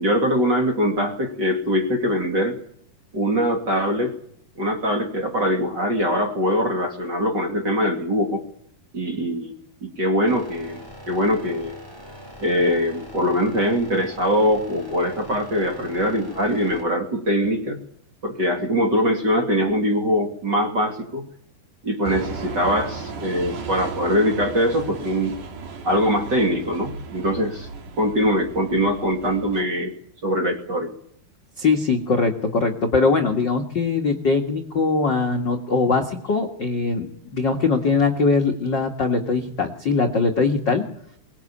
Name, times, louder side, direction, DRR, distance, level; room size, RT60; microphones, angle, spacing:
voice 1, 0.0-2.6 3.1-4.1 4.6-8.4 8.9-9.5 9.8-11.8 12.4-17.8 18.2-21.2 21.8-25.4 25.8-27.7 28.0-29.9 30.2-30.9, equal, 35° right, 4 dB, 2.4 m, -22 dB
sound 1, 10.3-16.8, equal, 5° right, 4.3 m, -42 dB
sound 2, 22.0-29.6, right 4 dB, 60° right, 3.6 m, -35 dB
voice 2, 31.6-40.9, left 4 dB, 50° left, 3 dB, 1.4 m, -21 dB
23.0 x 20.0 x 8.6 m, 0.68 s
omnidirectional pair, 4.4 m